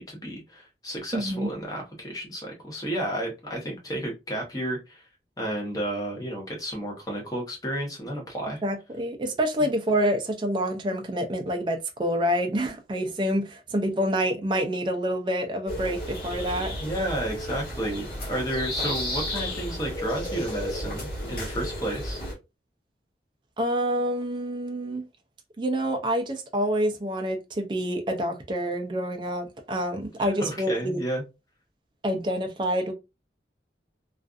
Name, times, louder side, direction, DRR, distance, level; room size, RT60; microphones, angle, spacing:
voice 1, 0.0-5.0 5.4-8.6 16.8-22.2 30.2-31.2, right 1 dB, 20° left, 0.9 m, -32 dB
voice 2, 1.1-1.5 8.6-16.7 23.6-25.0 25.6-31.0 32.0-32.9, equal, 25° right, 0.4 m, -27 dB
sound 1, 15.7-22.3, left 1 dB, 55° left, 1.3 m, -33 dB
2.4 x 2.4 x 2.3 m
head